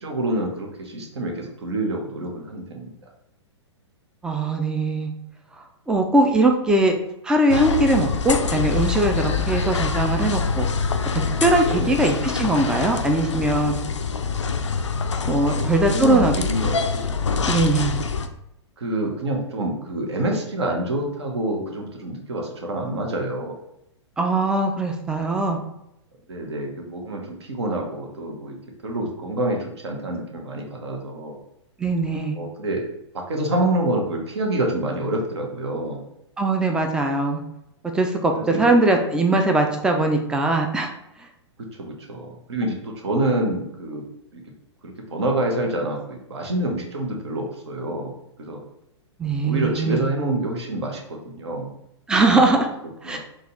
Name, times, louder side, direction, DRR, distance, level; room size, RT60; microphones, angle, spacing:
voice 1, 0.0-2.9 11.7-12.0 15.4-17.2 18.8-23.6 26.3-28.6 28.8-31.4 32.3-32.9 33.1-36.0 38.4-38.7 41.6-44.0 44.3-44.4 44.8-48.1 48.4-48.6 49.4-51.7 53.0-53.2, right 1 dB, 65° right, 1 dB, 1.0 m, -27 dB
voice 2, 4.2-5.1 5.9-6.9 7.2-10.7 11.4-13.8 15.3-16.3 17.5-18.0 24.2-25.6 31.8-32.4 36.4-37.4 37.9-40.9 49.2-50.0 52.1-52.7 53.0-53.2, right 2 dB, 5° right, 3 dB, 0.4 m, -20 dB
sound 1, 7.5-18.3, left 5 dB, 80° left, 0.4 m, -25 dB
3.9 x 2.3 x 3.9 m, 0.83 s
figure-of-eight pair, 110°, 15 cm